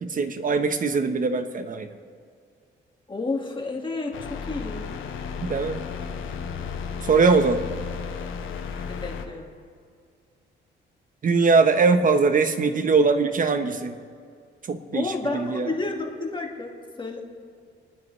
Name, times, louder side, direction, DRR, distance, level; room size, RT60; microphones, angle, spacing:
voice 1, 0.0-1.9 5.4-5.8 7.0-7.6 11.2-13.9 14.7-15.7, right 4 dB, 45° right, 8 dB, 1.2 m, -21 dB
voice 2, 3.1-4.9 7.2-7.4 8.8-9.5 14.9-17.2, left 3 dB, 25° left, 0 dB, 2.1 m, -31 dB
sound 1, 4.1-9.2, left 6 dB, 75° left, 1.3 m, -34 dB
27.0 x 9.7 x 3.3 m, 2.1 s
cardioid pair, 90°, 20 cm